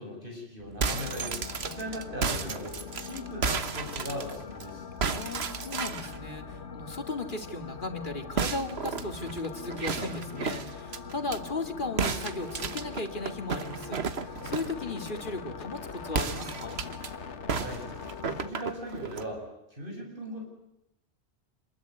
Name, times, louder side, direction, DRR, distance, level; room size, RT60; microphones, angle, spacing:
voice 1, 0.0-4.9 17.5-17.9 18.3-20.4, equal, 50° right, 1 dB, 7.9 m, -39 dB
sound 1, 0.6-4.6 5.0-6.2 8.4-11.4 12.0-14.8 16.1-17.1 17.5-19.3, right 5 dB, 65° right, 1.5 m, -33 dB
sound 2, 0.8-18.5, left 5 dB, 85° left, 1.7 m, -42 dB
voice 2, 5.1-16.8, left 3 dB, 45° left, 7 dB, 2.4 m, -36 dB
27.5 x 21.0 x 9.6 m, 0.85 s
omnidirectional pair, 1.1 m